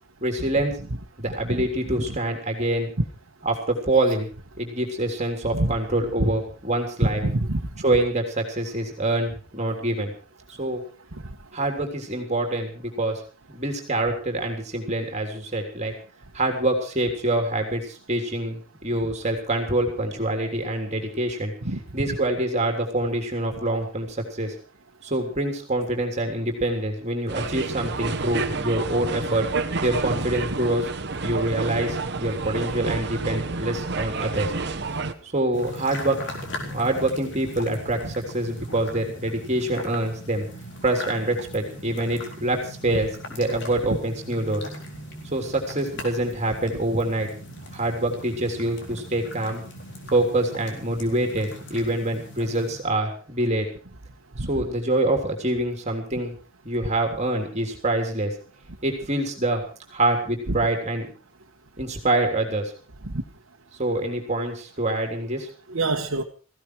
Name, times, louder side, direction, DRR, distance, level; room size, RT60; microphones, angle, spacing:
voice 1, 0.2-0.7 1.2-2.9 3.4-4.3 4.6-7.2 7.8-10.1 10.6-10.8 11.5-13.2 13.5-15.9 16.3-21.5 21.9-24.5 25.0-29.5 29.8-30.9 31.2-34.5 35.2-36.2 36.7-40.4 40.8-44.6 45.3-47.3 47.7-49.6 50.1-53.7 54.4-56.3 56.6-58.3 58.8-59.6 59.9-61.1 61.8-62.7 63.8-65.5, right 1 dB, 35° right, 3 dB, 3.3 m, -25 dB
voice 2, 7.0-7.6 21.6-21.8 38.0-38.1 54.4-54.5 60.5-60.6 63.0-63.1 65.7-66.2, right 2 dB, 80° right, -1 dB, 1.5 m, -25 dB
sound 1, 27.3-35.1, right 3 dB, 55° right, 1.3 m, -29 dB
sound 2, 35.5-52.8, left 1 dB, 60° left, 4.1 m, -39 dB
18.0 x 16.0 x 4.7 m, 0.38 s
head